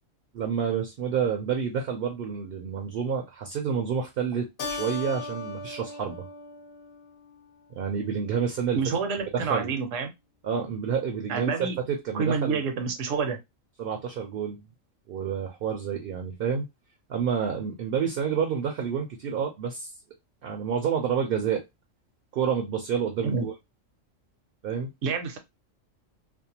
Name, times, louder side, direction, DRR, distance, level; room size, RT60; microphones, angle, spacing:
voice 1, 0.3-6.2 7.7-8.8 9.3-9.7 10.4-12.6 13.8-14.6 15.1-16.6 17.1-19.9 20.4-21.6 22.3-23.5 24.6-24.9, right 7 dB, 60° right, 0.6 m, -29 dB
Keyboard (musical), 4.6-7.5, left 3 dB, 50° left, 0.8 m, -38 dB
voice 2, 8.8-10.1 11.3-11.8 12.1-13.4 23.2-23.4 25.0-25.4, right 5 dB, 75° right, 1.0 m, -28 dB
2.6 x 2.1 x 2.7 m
omnidirectional pair, 1.4 m